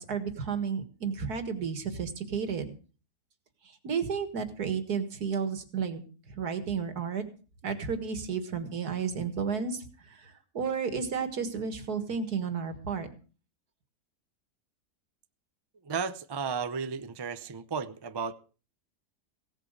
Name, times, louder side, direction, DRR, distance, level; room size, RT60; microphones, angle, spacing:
voice 1, 0.0-2.7 3.8-6.0 6.4-7.2 7.6-9.8 10.1-13.1, right 6 dB, 75° right, 2.3 m, -32 dB
voice 2, 15.8-18.3, right 5 dB, 40° right, 0.3 m, -34 dB
16.5 x 8.2 x 6.6 m
omnidirectional pair, 1.7 m